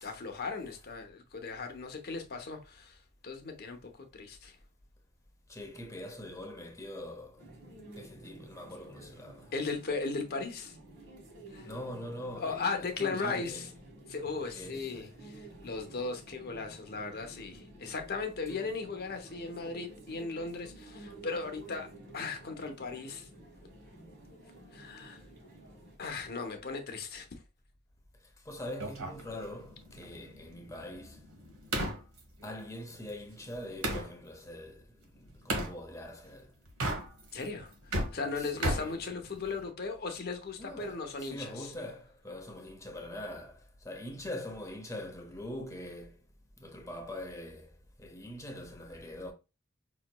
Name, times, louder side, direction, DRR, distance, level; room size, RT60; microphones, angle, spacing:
voice 1, 0.0-4.6 9.5-10.8 11.5-11.7 12.4-13.7 14.1-21.9 22.1-23.3 24.7-25.2 26.0-27.3 37.3-41.7, left 4 dB, 50° left, 0.8 m, -37 dB
voice 2, 5.5-7.4 8.0-9.5 11.6-13.7 14.5-15.1 18.5-18.7 28.2-31.2 32.4-34.9 35.1-36.5 38.4-39.0 40.6-46.2 46.6-47.7 48.0-49.3, left 1 dB, 15° left, 0.7 m, -43 dB
sound 1, 7.4-26.0, right 1 dB, 60° right, 1.4 m, -52 dB
sound 2, 28.8-34.1 35.5-35.8 36.7-37.4 37.7-39.7, right 1 dB, 85° right, 1.2 m, -36 dB
5.6 x 3.0 x 2.2 m
head